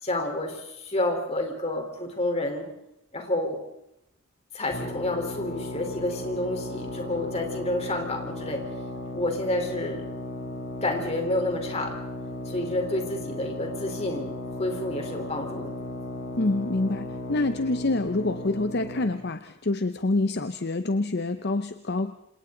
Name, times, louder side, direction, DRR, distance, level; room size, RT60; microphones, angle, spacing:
voice 1, 0.0-2.7 3.1-3.6 4.5-8.6 9.1-10.0 10.8-12.0 12.5-15.7, left 1 dB, 30° left, 3 dB, 4.1 m, -29 dB
sound 1, 4.7-19.2, left 1 dB, 70° left, 4.2 m, -36 dB
voice 2, 16.4-22.1, left 2 dB, 50° left, 10 dB, 0.8 m, -26 dB
28.5 x 27.5 x 4.0 m, 0.82 s
head